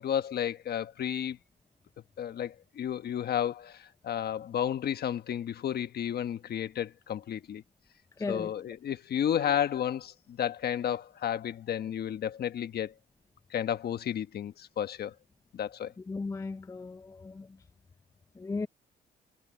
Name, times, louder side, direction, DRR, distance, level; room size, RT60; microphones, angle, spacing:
voice 1, 0.0-1.4 2.2-7.6 8.3-12.9 13.5-15.1 15.5-15.9, left 9 dB, 60° left, 1.2 m, -32 dB
voice 2, 8.2-8.5 16.1-17.5 18.4-18.7, left 3 dB, 15° left, 0.4 m, -36 dB
cardioid pair, 120°, 18 cm